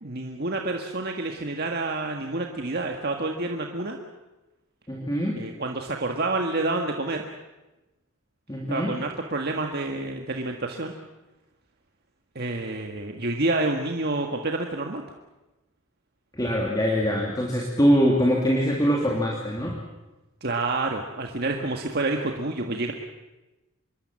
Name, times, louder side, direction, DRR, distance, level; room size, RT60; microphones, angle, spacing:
voice 1, 0.0-4.0 5.4-7.2 8.7-10.9 12.3-15.0 20.4-22.9, right 2 dB, 50° right, 2 dB, 1.7 m, -28 dB
voice 2, 4.9-5.4 8.5-8.9 16.3-19.8, equal, 20° left, -2 dB, 3.1 m, -23 dB
26.0 x 22.0 x 7.7 m, 1.0 s
head